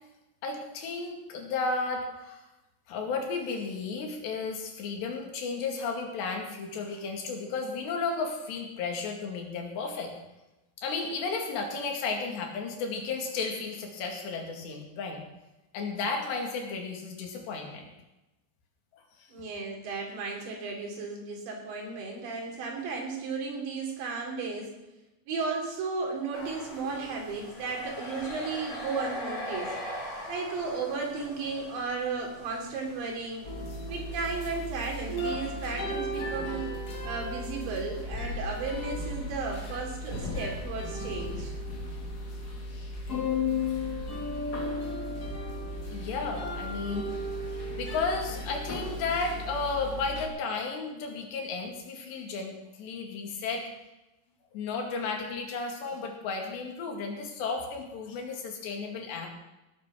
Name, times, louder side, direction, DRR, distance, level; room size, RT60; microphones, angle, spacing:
voice 1, 0.4-2.5 2.9-10.1 10.8-15.2 15.7-17.9 45.9-47.1 47.5-53.6 54.5-59.3, left 4 dB, 80° left, 2 dB, 4.4 m, -33 dB
voice 2, 19.3-24.7 25.3-29.8 30.3-33.5 33.9-36.6 37.0-41.5, right 4 dB, 85° right, 0 dB, 5.4 m, -34 dB
sound 1, 26.3-34.6, left 1 dB, 25° left, 3.7 m, -41 dB
sound 2, 33.4-50.3, left 2 dB, 45° left, 1.3 m, -35 dB
17.5 x 8.3 x 6.3 m, 0.99 s
omnidirectional pair, 5.0 m